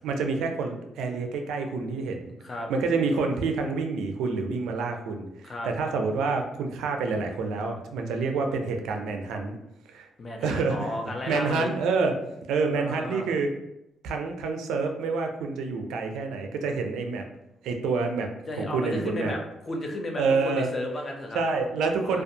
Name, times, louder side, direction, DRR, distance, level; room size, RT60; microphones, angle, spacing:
voice 1, 0.0-2.3 2.7-9.6 9.9-10.1 10.4-10.9 11.3-12.1 12.5-13.5 14.0-17.2 17.6-18.3 18.6-19.3 20.2-20.7 21.3-22.2, right 4 dB, 85° right, 4 dB, 0.3 m, -27 dB
voice 2, 10.2-11.7 12.7-13.3 18.5-21.4 22.0-22.2, left 1 dB, 35° left, 2 dB, 0.5 m, -34 dB
2.5 x 2.2 x 2.7 m, 0.87 s
cardioid pair, 90°, 0 cm